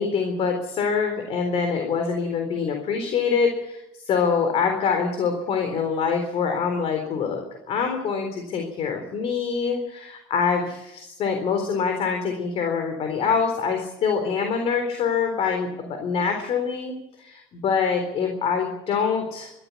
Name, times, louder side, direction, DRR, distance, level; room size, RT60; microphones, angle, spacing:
voice 1, 0.0-19.5, left 6 dB, 45° left, 5 dB, 4.0 m, -25 dB
24.5 x 14.0 x 8.5 m, 0.86 s
cardioid pair, 160°, 14 cm